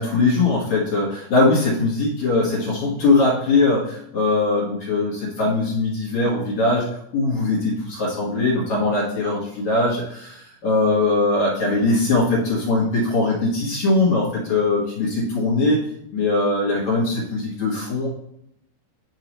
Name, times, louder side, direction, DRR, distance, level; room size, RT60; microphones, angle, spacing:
voice 1, 0.0-6.9 7.1-15.8 16.1-18.1, left 3 dB, 60° left, -6 dB, 2.0 m, -21 dB
11.0 x 4.7 x 3.1 m, 0.74 s
omnidirectional pair, 5.5 m